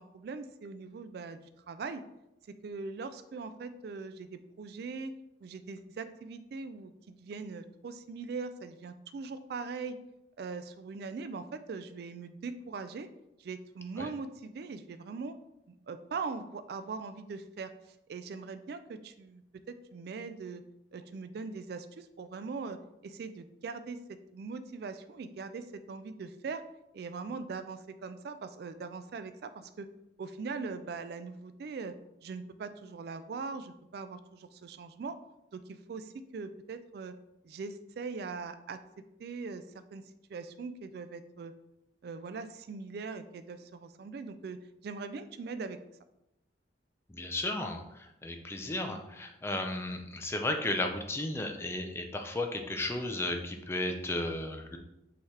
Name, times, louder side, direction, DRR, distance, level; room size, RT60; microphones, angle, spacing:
voice 1, 0.0-1.4 1.7-2.0 2.5-5.1 5.4-10.0 10.4-13.1 13.4-15.4 15.7-20.6 20.9-26.6 26.9-29.9 30.2-32.0 32.2-35.2 35.5-37.2 37.4-38.8 39.2-39.6 39.9-40.0 40.3-41.5 42.0-45.8, right 4 dB, 55° right, 11 dB, 0.3 m, -41 dB
voice 2, 47.1-47.8 48.2-54.8, left 2 dB, 15° left, 4 dB, 0.4 m, -34 dB
5.6 x 2.9 x 3.2 m, 0.89 s
head